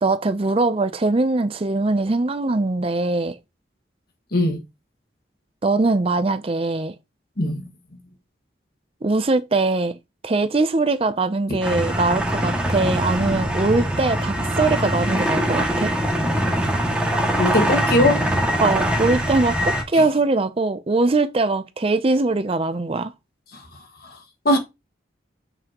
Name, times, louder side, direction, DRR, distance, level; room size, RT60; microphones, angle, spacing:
voice 1, 0.0-3.4 5.6-6.9 9.0-10.0 10.2-16.0 18.6-23.1, right 3 dB, 30° right, 0.5 m, -21 dB
voice 2, 7.4-7.7 11.5-11.6 17.4-18.2 19.9-20.0 23.5-23.7 24.0-24.2 24.4-24.6, left 1 dB, 55° left, 1.7 m, -20 dB
sound 1, 11.6-19.8, equal, 5° right, 2.0 m, -23 dB
7.1 x 5.9 x 2.9 m
head